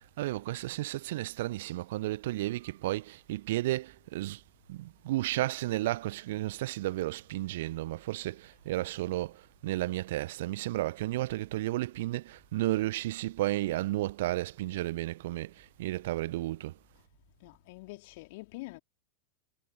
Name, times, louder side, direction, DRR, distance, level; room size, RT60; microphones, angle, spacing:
voice 1, 0.0-4.4 4.7-16.7, right 16 dB, 55° right, 1.3 m, -33 dB
voice 2, 17.4-18.8, left 23 dB, 50° left, 3.3 m, -45 dB
figure-of-eight pair, 90°, 0 cm